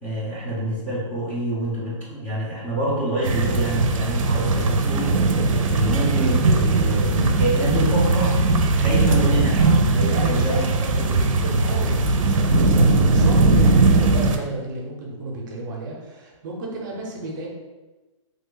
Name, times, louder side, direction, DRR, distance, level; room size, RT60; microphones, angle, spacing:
voice 1, 0.0-8.4 8.7-10.6 11.0-11.1, right 1 dB, 10° left, -9 dB, 0.6 m, -27 dB
sound 1, 3.2-14.4, right 3 dB, 75° right, 0.5 m, -19 dB
voice 2, 10.0-11.0 11.3-17.5, right 2 dB, 35° right, -2 dB, 0.7 m, -33 dB
3.3 x 2.1 x 3.7 m, 1.2 s
hypercardioid pair, 160°, 17 cm